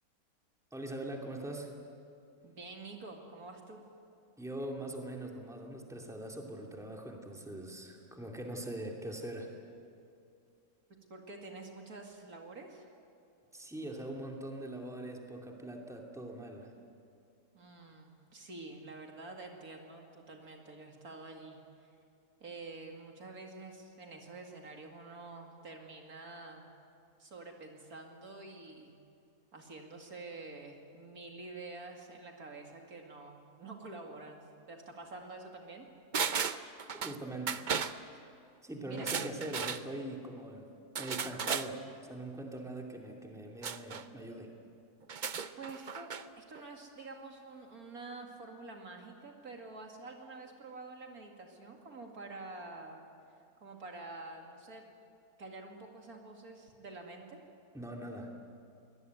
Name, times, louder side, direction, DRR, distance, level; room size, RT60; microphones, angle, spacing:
voice 1, 0.7-1.7 4.4-9.5 13.5-16.7 36.9-37.6 38.6-40.7 41.0-44.5 57.7-58.3, right 1 dB, ahead, 0 dB, 2.6 m, -42 dB
voice 2, 2.4-3.8 11.1-12.9 17.5-21.9 22.4-26.7 27.2-29.0 29.5-35.9 38.1-38.2 38.8-39.2 45.6-53.0 53.6-54.9 55.4-57.4, right 3 dB, 65° right, 2 dB, 2.8 m, -48 dB
sound 1, 36.1-37.2 37.5-38.0 38.9-39.8 41.0-41.7 43.6-44.0 45.0-46.3 46.6-46.7, right 6 dB, 45° right, 0.6 m, -35 dB
23.5 x 19.0 x 9.5 m, 2.5 s
omnidirectional pair, 1.7 m